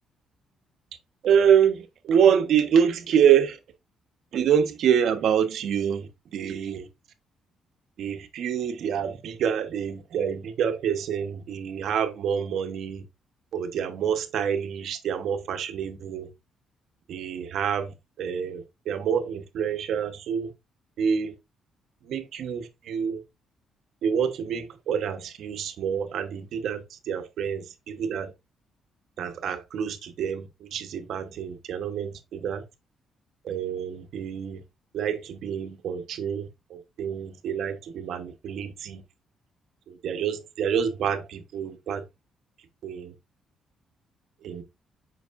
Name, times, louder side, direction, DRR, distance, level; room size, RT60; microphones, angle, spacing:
voice 1, 1.2-3.6 4.3-6.9 8.0-13.0 13.5-16.3 17.1-20.5 21.0-21.3 22.1-23.2 24.0-28.3 29.2-32.6 33.4-34.6 34.9-39.0 39.9-42.1 42.8-43.1 44.4-44.6, right 8 dB, 70° right, 1.2 m, -26 dB
8.1 x 5.8 x 2.6 m
cardioid pair, 90°, 0 cm